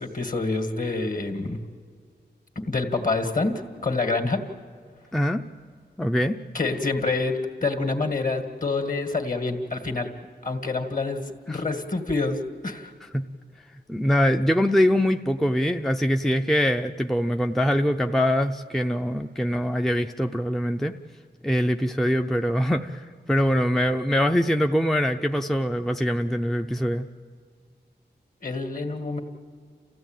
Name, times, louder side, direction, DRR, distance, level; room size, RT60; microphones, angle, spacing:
voice 1, 0.0-1.6 2.6-3.5 3.8-4.4 6.5-10.1 10.4-11.2 11.5-12.9 28.4-29.2, left 3 dB, 45° left, 6 dB, 2.0 m, -27 dB
voice 2, 5.1-5.4 6.0-6.4 11.5-11.6 13.1-13.2 13.9-20.9 21.4-27.1, equal, ahead, 5 dB, 0.5 m, -23 dB
29.0 x 15.0 x 9.0 m, 2.1 s
wide cardioid pair, 90°, 18 cm